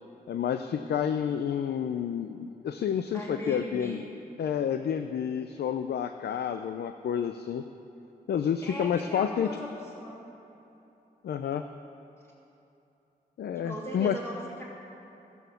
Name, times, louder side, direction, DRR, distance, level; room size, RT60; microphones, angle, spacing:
voice 1, 0.3-4.0 4.4-7.7 8.3-9.5 11.2-11.6 13.4-14.1, left 8 dB, 90° left, 8 dB, 0.4 m, -29 dB
voice 2, 3.1-4.0 8.6-10.2 13.5-14.6, equal, 15° left, -6 dB, 3.1 m, -38 dB
14.0 x 7.1 x 6.9 m, 2.9 s
wide cardioid pair, 115°, 17 cm